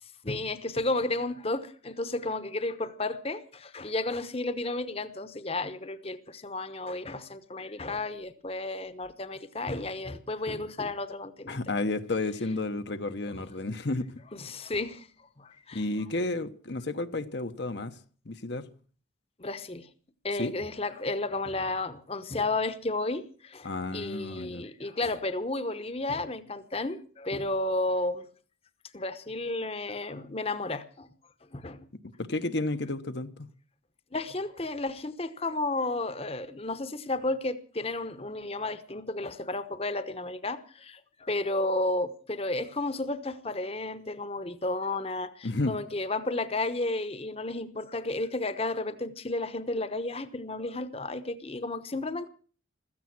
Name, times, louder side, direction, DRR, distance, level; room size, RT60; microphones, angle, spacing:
voice 1, 0.2-11.7 13.3-13.4 14.3-15.1 15.4-15.8 19.4-19.9 20.2-28.3 28.9-31.1 31.5-31.8 34.1-52.3, left 2 dB, 30° left, 1.0 m, -32 dB
voice 2, 11.5-14.1 15.7-18.0 18.3-18.7 20.4-20.5 23.6-24.6 32.2-33.5 45.4-45.8, left 2 dB, 60° left, 1.0 m, -31 dB
16.0 x 14.0 x 6.0 m
head